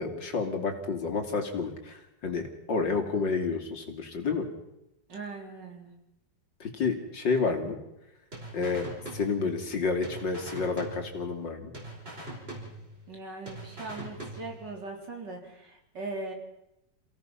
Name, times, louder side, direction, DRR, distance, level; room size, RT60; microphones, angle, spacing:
voice 1, 0.0-2.4 2.7-4.5 6.6-7.8 8.5-11.7, left 4 dB, 75° left, 4 dB, 3.3 m, -30 dB
voice 2, 5.1-5.9 13.1-16.3, right 3 dB, 70° right, 1 dB, 4.5 m, -40 dB
sound 1, 8.3-9.8 10.0-11.5 11.7-13.2 13.5-14.8, right 1 dB, 30° right, 5.6 m, -42 dB
29.0 x 17.0 x 5.8 m, 0.87 s
omnidirectional pair, 2.0 m